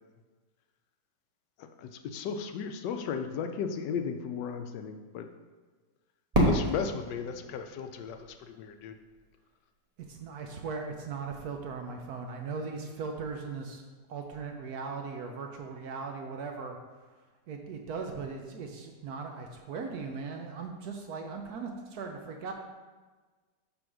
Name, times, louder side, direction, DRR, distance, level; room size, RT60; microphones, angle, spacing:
voice 1, 1.6-5.3 6.4-8.9, left 6 dB, 75° left, 7 dB, 1.2 m, -35 dB
Fireworks, 6.3-9.2, right 1 dB, 25° right, 1.1 m, -30 dB
voice 2, 10.1-13.8 14.1-16.8 17.5-22.5, right 4 dB, 65° right, 3 dB, 1.0 m, -38 dB
6.9 x 3.5 x 6.0 m, 1.3 s
omnidirectional pair, 1.9 m